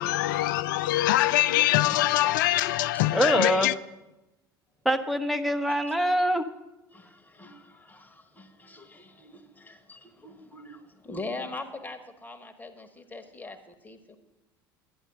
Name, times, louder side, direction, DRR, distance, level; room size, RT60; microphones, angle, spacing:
voice 1, 0.0-3.7, left 15 dB, 60° left, 0.4 m, -24 dB
voice 2, 3.1-3.7 4.8-6.4, equal, ahead, 1.0 m, -24 dB
voice 3, 6.9-14.2, left 2 dB, 15° left, 1.4 m, -42 dB
11.5 x 10.0 x 6.0 m
figure-of-eight pair, 65°, 12 cm